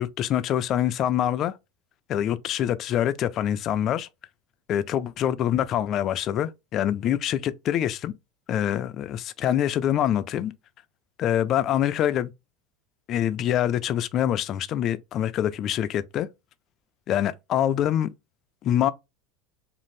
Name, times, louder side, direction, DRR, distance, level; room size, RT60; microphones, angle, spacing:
voice 1, 0.0-1.6 2.1-4.1 4.7-8.1 8.5-10.5 11.2-12.3 13.1-16.3 17.1-18.1 18.6-18.9, left 11 dB, 40° left, 0.3 m, -25 dB
2.6 x 2.5 x 3.1 m
supercardioid pair, 140°, 0 cm